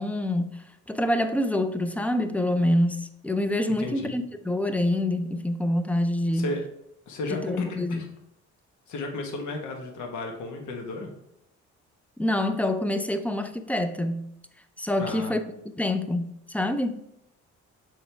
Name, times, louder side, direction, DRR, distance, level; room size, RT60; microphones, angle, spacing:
voice 1, 0.0-6.5 7.3-8.0 12.2-14.3 14.8-15.4 15.8-17.0, left 1 dB, 5° left, 0.5 m, -26 dB
voice 2, 3.8-4.2 6.3-6.6 7.1-8.1 8.9-11.1 15.0-15.4, left 2 dB, 75° left, 1.3 m, -34 dB
6.5 x 4.5 x 3.3 m
cardioid pair, 90°, 30 cm